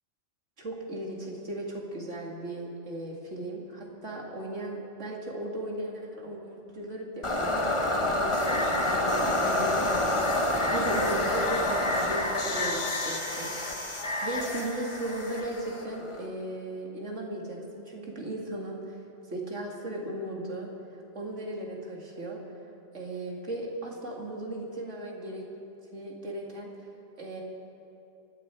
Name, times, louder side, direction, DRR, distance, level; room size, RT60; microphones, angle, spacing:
voice 1, 0.6-10.3 10.7-13.9 14.2-19.0 19.3-20.7 21.1-22.4 22.9-25.4 25.9-26.7 27.2-27.4, right 1 dB, 80° right, -2 dB, 2.7 m, -36 dB
sound 1, 7.2-16.3, left 1 dB, 25° left, 1.3 m, -28 dB
25.0 x 11.5 x 4.7 m, 2.8 s
omnidirectional pair, 1.2 m